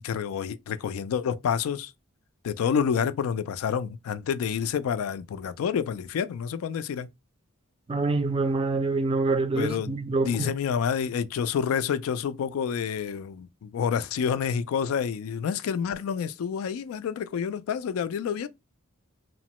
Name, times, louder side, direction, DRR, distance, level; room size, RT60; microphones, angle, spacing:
voice 1, 0.0-1.9 2.4-7.1 9.5-10.0 10.2-18.5, left 7 dB, 85° left, 0.3 m, -28 dB
voice 2, 7.9-10.5, right 3 dB, 25° right, 0.4 m, -26 dB
3.0 x 2.0 x 2.9 m
head